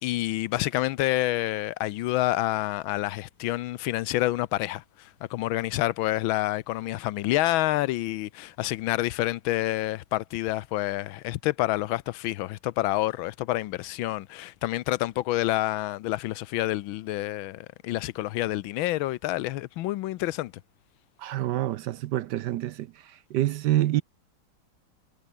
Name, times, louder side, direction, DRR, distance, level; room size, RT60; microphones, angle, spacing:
voice 1, 0.0-20.5, left 16 dB, 90° left, 1.5 m, -28 dB
voice 2, 21.2-22.9 23.3-24.0, right 14 dB, 70° right, 1.1 m, -26 dB
omnidirectional pair, 2.1 m